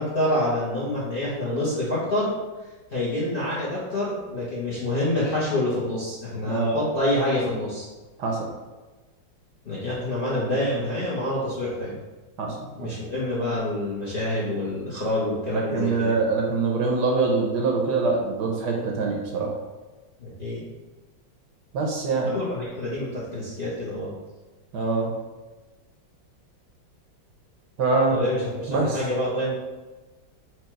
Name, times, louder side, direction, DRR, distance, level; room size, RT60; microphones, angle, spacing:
voice 1, 0.0-2.3 2.9-7.9 9.6-12.0 12.7-16.2 20.2-20.7 22.2-24.1 28.1-29.5, left 1 dB, 40° left, -8 dB, 0.8 m, -27 dB
voice 2, 6.4-6.8 8.2-8.5 12.4-12.9 15.5-19.6 21.7-22.3 24.7-25.1 27.8-28.2 28.7-29.0, right 3 dB, 65° right, 0 dB, 1.2 m, -24 dB
4.6 x 2.4 x 4.5 m, 1.2 s
omnidirectional pair, 2.1 m